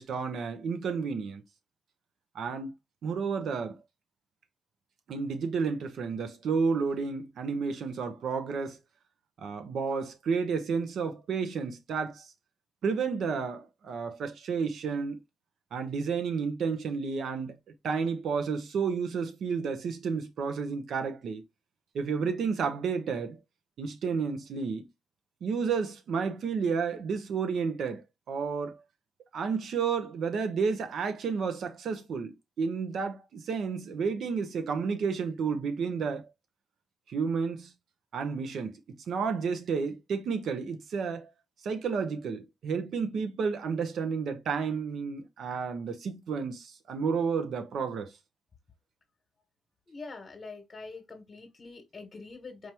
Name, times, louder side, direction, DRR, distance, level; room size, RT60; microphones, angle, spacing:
voice 1, 0.0-1.4 2.3-2.7 3.0-3.8 5.1-8.8 9.4-12.3 12.8-15.2 15.7-17.6 17.8-21.4 21.9-23.4 23.8-24.9 25.4-28.8 29.3-36.3 37.1-37.7 38.1-41.3 41.6-48.1, right 5 dB, 80° right, 0.9 m, -31 dB
voice 2, 49.9-52.7, left 3 dB, 40° left, 1.2 m, -44 dB
4.8 x 2.9 x 3.4 m
cardioid pair, 90°, 0 cm